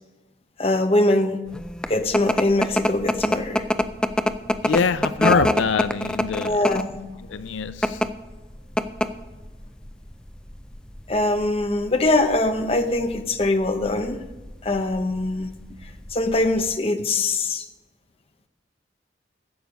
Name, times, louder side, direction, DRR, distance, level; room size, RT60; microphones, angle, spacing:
voice 1, 0.6-1.4 1.9-3.7 5.2-5.5 6.4-7.0 11.1-14.2 14.6-15.6 15.8-17.6, left 2 dB, 30° left, 7 dB, 0.8 m, -22 dB
sound 1, 1.5-16.8, left 1 dB, 5° left, 0.4 m, -26 dB
voice 2, 4.6-6.6 7.3-8.0, left 5 dB, 90° left, 14 dB, 0.4 m, -24 dB
11.5 x 8.2 x 5.2 m, 1.2 s
head